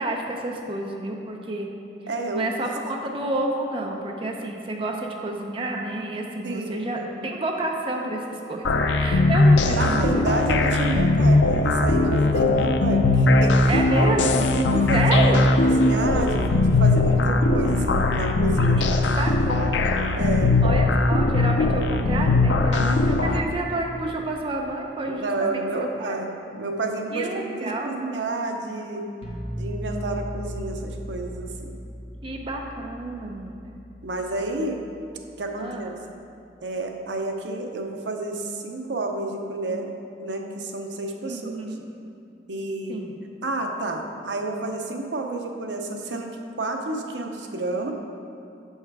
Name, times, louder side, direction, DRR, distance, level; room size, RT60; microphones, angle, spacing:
voice 1, 0.0-1.7 2.3-8.7 9.0-10.3 13.7-14.5 14.9-15.5 18.6-19.9 20.6-26.1 27.1-27.9 32.2-33.7 35.6-35.9 41.2-41.9 42.9-43.1, right 2 dB, 30° right, 1 dB, 0.5 m, -29 dB
voice 2, 2.1-2.7 6.4-7.3 9.7-13.6 14.0-14.1 14.5-19.1 20.2-20.5 25.1-29.1 29.5-31.8 34.0-34.8 35.4-35.9 36.6-39.9 40.2-41.6 42.5-43.0 43.4-47.9, right 2 dB, 80° right, 3 dB, 0.7 m, -30 dB
sound 1, 8.6-23.4, left 2 dB, 90° left, 0.5 m, -20 dB
sound 2, 29.2-35.0, equal, 35° left, 0.9 m, -37 dB
6.6 x 5.6 x 4.7 m, 2.7 s
head